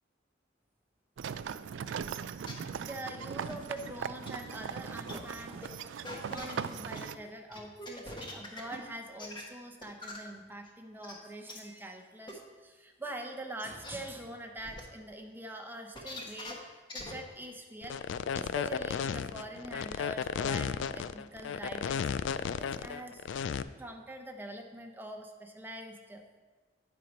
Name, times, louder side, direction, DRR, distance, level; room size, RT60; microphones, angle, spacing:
sound 1, 1.2-7.2, right 7 dB, 75° right, 0.3 m, -39 dB
sound 2, 2.5-2.6 3.5-3.9 4.3-4.4 4.7-4.8 5.1-5.2 5.6-5.8 6.0-7.1 7.5-8.8 9.2-9.4 9.8-10.2 10.7-10.8 11.0-11.1 11.5-11.6 12.3-12.4 13.0-13.1 13.6-13.9 14.6-14.8 16.0-16.5 16.9-17.1 17.4-17.5, left 1 dB, 25° left, 1.2 m, -42 dB
voice 1, 2.5-16.6 16.9-18.0 18.3-23.3 23.8-26.2, right 1 dB, 10° right, 4 dB, 0.7 m, -44 dB
sound 3, 17.8-23.6, left 7 dB, 80° left, 0.3 m, -33 dB
9.8 x 4.5 x 5.2 m, 1.3 s
head